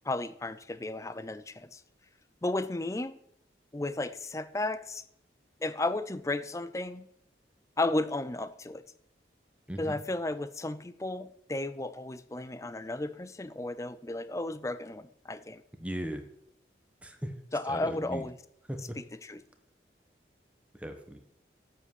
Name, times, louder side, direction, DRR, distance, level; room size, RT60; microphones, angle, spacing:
voice 1, 0.0-1.8 2.4-3.2 3.7-5.0 5.6-7.1 7.8-8.8 9.8-15.6 17.5-18.4 19.0-19.4, left 2 dB, 15° left, 0.5 m, -34 dB
voice 2, 15.8-16.2 17.0-17.3 17.7-18.3 18.7-18.8 20.7-21.2, equal, 5° right, 1.3 m, -37 dB
8.2 x 7.5 x 8.1 m
head